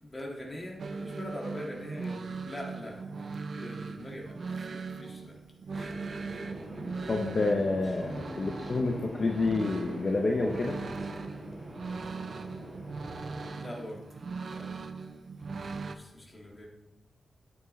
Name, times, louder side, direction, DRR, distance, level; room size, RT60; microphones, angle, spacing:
voice 1, 0.0-4.5 5.0-5.3 5.7-6.0 13.5-14.0 14.5-14.7 15.5-15.6 16.0-16.7, left 1 dB, 20° left, -2 dB, 2.0 m, -42 dB
sound 1, 0.8-16.0, right 4 dB, 55° right, 0.5 m, -40 dB
sound 2, 5.7-13.5, equal, 10° right, 2.7 m, -44 dB
voice 2, 7.1-10.8, left 3 dB, 45° left, 1 dB, 0.8 m, -28 dB
9.9 x 8.3 x 3.2 m, 0.95 s
wide cardioid pair, 140°, 0 cm